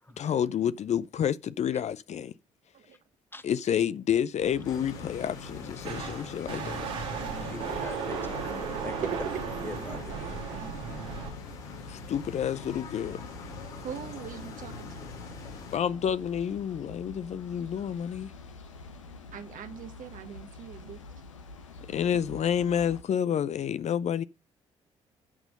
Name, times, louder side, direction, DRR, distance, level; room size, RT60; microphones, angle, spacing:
voice 1, 0.2-2.3 3.4-6.9 11.9-13.2 15.7-18.3 21.9-24.2, left 9 dB, 45° left, 0.5 m, -29 dB
sound 1, 4.4-23.0, left 4 dB, 85° left, 0.8 m, -47 dB
sound 2, 4.6-15.8, left 4 dB, 70° left, 2.5 m, -43 dB
sound 3, 5.8-11.3, right 6 dB, 80° right, 2.1 m, -35 dB
voice 2, 7.5-9.1 9.6-10.1 10.4-10.6, left 2 dB, 15° left, 1.0 m, -42 dB
voice 3, 13.8-15.1 19.3-21.0, right 8 dB, 55° right, 1.3 m, -42 dB
10.5 x 6.1 x 5.4 m
figure-of-eight pair, 45°, 16 cm